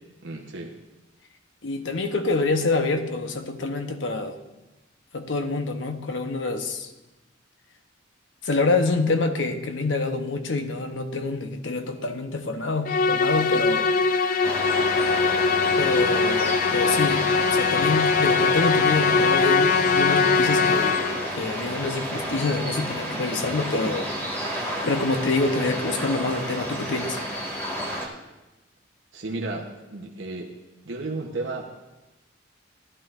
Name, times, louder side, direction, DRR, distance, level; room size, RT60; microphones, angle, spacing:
voice 1, 0.2-0.7 29.1-30.5 30.8-31.6, right 2 dB, 70° right, 0 dB, 0.9 m, -33 dB
voice 2, 1.6-4.4 5.1-6.9 8.4-13.9 15.7-21.0 21.3-24.4 24.8-27.2, left 3 dB, 70° left, 7 dB, 0.8 m, -26 dB
Musical instrument, 12.9-21.4, left 4 dB, 45° left, 0.4 m, -21 dB
sound 1, 14.4-28.1, equal, 15° left, 1.6 m, -31 dB
15.5 x 11.0 x 2.5 m, 1.1 s
head